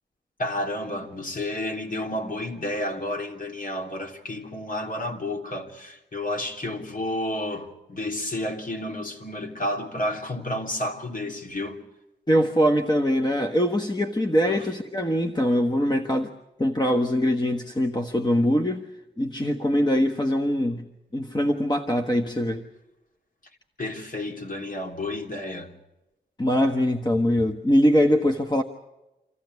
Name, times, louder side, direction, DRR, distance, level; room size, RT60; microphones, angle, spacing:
voice 1, 0.4-11.8 14.5-14.6 23.8-25.7, left 1 dB, 45° left, 3.1 m, -31 dB
voice 2, 12.3-16.3 16.6-18.8 19.2-20.9 21.1-22.7 26.4-28.6, equal, 20° left, 1.4 m, -22 dB
26.5 x 15.0 x 9.5 m
wide cardioid pair, 75°, 19 cm